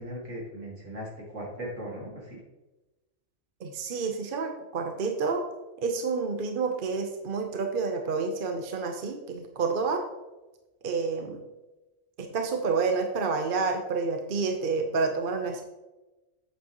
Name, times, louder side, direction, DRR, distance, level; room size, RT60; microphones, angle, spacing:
voice 1, 0.0-2.4, equal, 75° right, -2 dB, 2.5 m, -38 dB
voice 2, 3.6-5.4 5.8-10.0 10.8-11.4 12.2-15.6, right 4 dB, 50° right, 4 dB, 0.9 m, -29 dB
8.0 x 8.0 x 3.0 m, 1.0 s
omnidirectional pair, 1.3 m